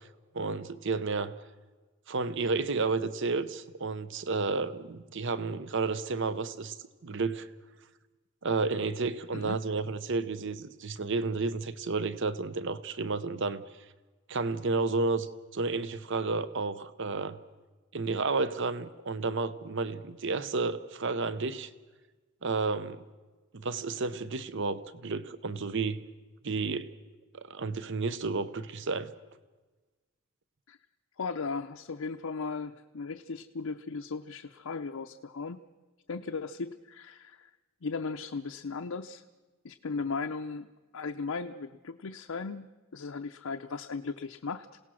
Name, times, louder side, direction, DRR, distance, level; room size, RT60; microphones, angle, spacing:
voice 1, 0.3-1.3 2.1-6.8 7.0-7.5 8.4-13.6 14.3-15.3 15.5-17.4 17.9-21.7 22.4-23.0 23.5-26.0 26.4-26.9 27.3-29.1, right 3 dB, 60° right, 14 dB, 0.8 m, -31 dB
voice 2, 31.2-35.6 36.1-37.5 37.8-39.2 39.6-40.7 40.9-44.8, left 4 dB, 75° left, 5 dB, 0.6 m, -37 dB
27.5 x 17.5 x 6.3 m, 1.3 s
head